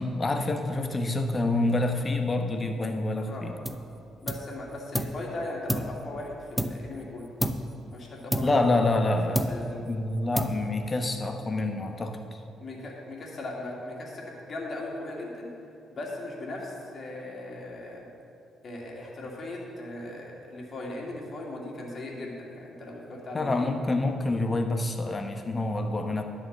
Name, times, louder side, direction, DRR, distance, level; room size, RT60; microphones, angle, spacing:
voice 1, 0.0-3.6 8.4-9.6 9.9-12.4 23.3-26.2, left 2 dB, 30° left, 5 dB, 1.2 m, -27 dB
sound 1, 3.6-3.9 4.3-5.2 5.7-7.0 7.4-7.8 8.3-9.1 9.3-9.9 10.3-10.9, equal, 5° right, 0.7 m, -31 dB
voice 2, 4.2-7.3 7.9-9.1 9.5-9.8 12.6-15.5 15.9-18.1 18.6-23.7, left 2 dB, 45° left, -2 dB, 2.6 m, -38 dB
11.0 x 6.4 x 7.3 m, 2.6 s
figure-of-eight pair, 45°, 0 cm